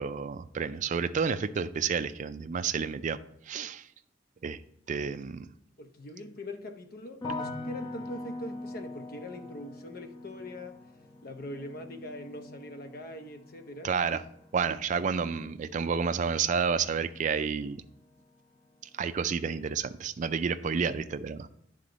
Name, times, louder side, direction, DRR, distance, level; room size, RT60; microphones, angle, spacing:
voice 1, 0.0-3.2 3.5-3.9 4.4-4.6 4.9-5.5 13.8-14.2 14.5-17.8 18.9-21.5, right 6 dB, 45° right, 0.4 m, -30 dB
voice 2, 5.8-10.8 11.2-13.9, left 1 dB, 55° left, 0.8 m, -42 dB
sound 1, 7.2-18.3 18.6-19.3, left 2 dB, 25° left, 0.6 m, -44 dB
9.8 x 3.8 x 5.0 m
head